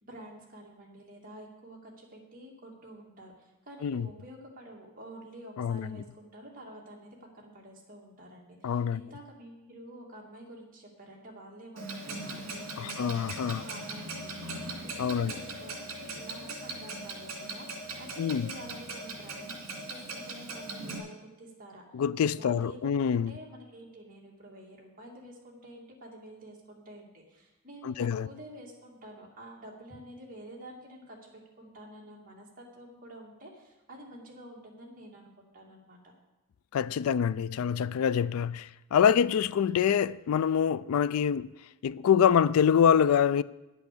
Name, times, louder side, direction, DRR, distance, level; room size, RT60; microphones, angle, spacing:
voice 1, 0.0-21.8 22.4-36.0, right 1 dB, 40° right, 2.4 m, -49 dB
voice 2, 5.6-6.0 8.6-9.0 12.8-13.6 15.0-15.3 18.2-18.5 21.9-23.3 27.8-28.3 36.7-41.5 41.8-43.4, left 8 dB, 85° left, 0.3 m, -25 dB
Clock, 11.8-21.0, right 2 dB, 70° right, 2.3 m, -40 dB
9.6 x 8.2 x 6.8 m
head